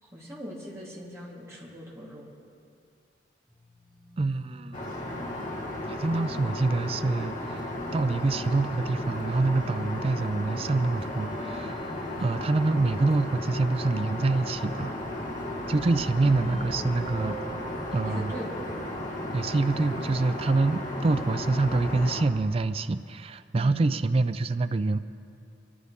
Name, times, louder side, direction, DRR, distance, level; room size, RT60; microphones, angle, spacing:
voice 1, 0.0-2.3 16.2-16.9 18.0-18.7 23.5-24.0, equal, 15° right, -7 dB, 3.6 m, -40 dB
sound 1, 3.5-22.1, right 1 dB, ahead, 0.8 m, -48 dB
voice 2, 4.2-4.8 5.9-11.8 12.2-14.9 15.7-17.4 17.9-18.3 19.3-25.0, right 3 dB, 35° right, 12 dB, 0.4 m, -26 dB
Aircraft, 4.7-22.2, left 1 dB, 45° left, 1.9 m, -35 dB
24.0 x 15.0 x 3.6 m, 2.5 s
head